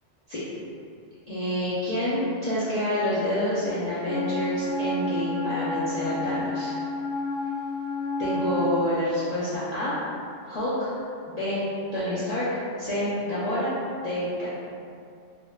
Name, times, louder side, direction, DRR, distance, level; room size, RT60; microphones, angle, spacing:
voice 1, 1.3-6.7 8.2-10.0 10.4-10.9 11.3-11.6 11.9-12.5 12.8-14.5, left 1 dB, 50° left, -12 dB, 0.5 m, -28 dB
Wind instrument woodwind instrument, 4.0-8.8, left 2 dB, 80° left, 1.1 m, -30 dB
3.6 x 2.2 x 2.2 m, 2.4 s
omnidirectional pair, 1.2 m